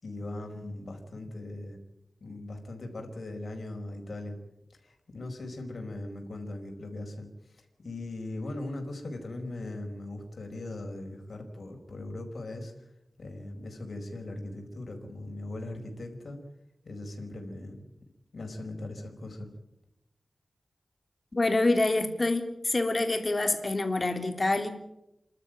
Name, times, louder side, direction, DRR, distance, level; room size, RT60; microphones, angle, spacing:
voice 1, 0.0-1.8 2.2-4.3 4.8-7.3 7.5-12.9 13.2-16.4 16.8-17.8 18.3-19.5, left 2 dB, 65° left, 3 dB, 4.9 m, -39 dB
voice 2, 21.3-24.7, left 2 dB, 35° left, 6 dB, 3.3 m, -26 dB
29.5 x 12.5 x 9.1 m, 0.88 s
wide cardioid pair, 105°, 0 cm